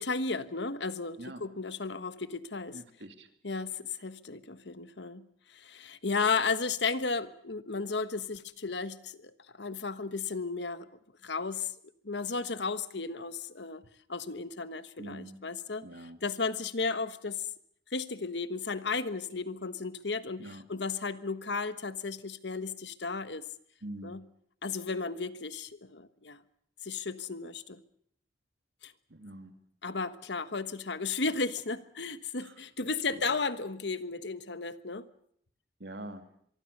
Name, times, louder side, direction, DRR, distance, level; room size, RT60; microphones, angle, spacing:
voice 1, 0.0-2.8 3.4-10.9 11.2-11.7 12.0-13.8 14.1-17.5 17.9-23.4 24.0-24.2 24.6-26.4 26.8-27.8 28.8-28.9 29.8-35.1, left 4 dB, 70° left, 13 dB, 1.3 m, -34 dB
voice 2, 2.7-3.3 15.0-15.4 15.8-16.2 20.4-20.6 23.8-24.2 29.1-29.5 33.1-33.2 35.8-36.2, right 1 dB, 65° right, 8 dB, 2.6 m, -44 dB
24.5 x 24.0 x 6.7 m, 0.67 s
head